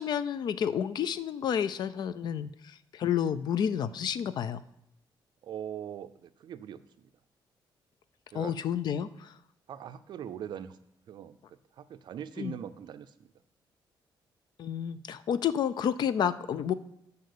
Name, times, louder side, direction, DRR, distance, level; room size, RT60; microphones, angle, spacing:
voice 1, 0.0-4.6 8.3-9.3 12.4-12.5 14.6-16.7, left 8 dB, 55° left, 15 dB, 0.4 m, -30 dB
voice 2, 5.4-7.1 8.3-8.6 9.7-10.8 11.1-13.3, right 9 dB, 60° right, 11 dB, 0.5 m, -42 dB
7.9 x 5.5 x 6.7 m, 0.78 s
cardioid pair, 160°, 9 cm